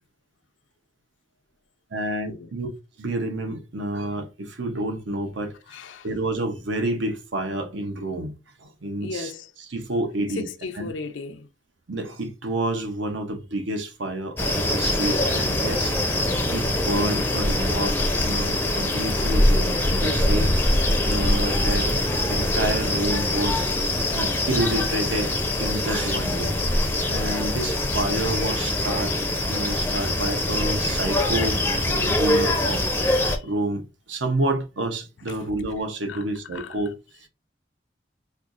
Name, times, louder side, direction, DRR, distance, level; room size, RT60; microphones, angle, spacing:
voice 1, 1.9-2.7 3.0-5.5 6.0-9.3 9.7-10.5 10.7-10.9 11.9-16.0 16.5-23.7 24.1-26.5 27.1-29.2 29.5-32.8 33.4-36.9 37.2-37.3, right 1 dB, 85° right, 0.8 m, -29 dB
voice 2, 5.7-6.1 9.0-9.5 10.4-11.5 33.2-33.5 35.3-35.4 36.1-36.2 36.5-36.7, left 4 dB, 90° left, 0.4 m, -36 dB
sound 1, 14.4-33.4, left 1 dB, 10° left, 0.4 m, -23 dB
4.4 x 2.4 x 2.4 m
head